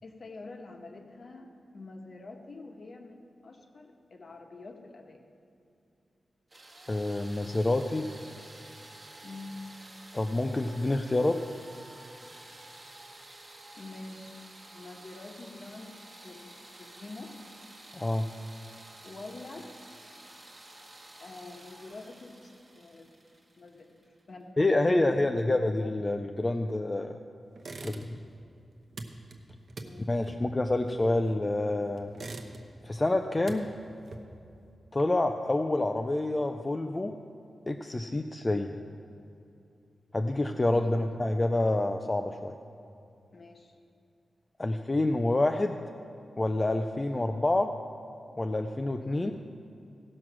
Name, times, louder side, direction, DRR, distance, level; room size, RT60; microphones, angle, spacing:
voice 1, 0.0-5.2 9.2-9.6 13.7-14.4 14.7-16.0 16.2-17.4 19.0-19.7 21.2-23.1 23.6-24.0 24.3-24.5 24.9-25.6 29.8-30.1 40.7-41.0 43.3-43.7, left 3 dB, 45° left, 3 dB, 1.1 m, -46 dB
sound 1, 6.5-24.2, right 1 dB, 25° right, 1.2 m, -51 dB
voice 2, 6.9-8.1 10.1-11.4 17.9-18.3 24.6-27.2 27.8-28.2 30.1-32.1 32.8-33.7 34.9-37.2 37.7-38.8 40.1-42.5 44.6-45.8 46.4-47.8 48.4-49.3, left 2 dB, 20° left, 5 dB, 0.4 m, -27 dB
sound 2, 27.6-28.4 28.6-31.5 32.0-32.9 33.2-34.5, right 2 dB, 50° right, 0.8 m, -44 dB
16.0 x 6.2 x 5.9 m, 2.6 s
wide cardioid pair, 150°, 0 cm